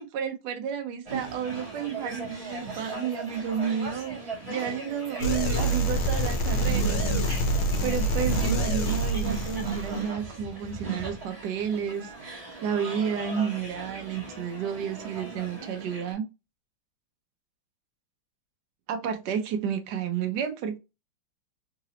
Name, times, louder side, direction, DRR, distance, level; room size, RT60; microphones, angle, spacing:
voice 1, 0.0-7.5 7.8-16.2 18.9-20.8, right 7 dB, 70° right, 1.1 m, -31 dB
sound 1, 1.0-16.1, right 4 dB, 20° right, 1.3 m, -38 dB
sound 2, 5.2-10.1, right 1 dB, 75° left, 1.6 m, -26 dB
3.8 x 2.9 x 2.8 m
omnidirectional pair, 2.3 m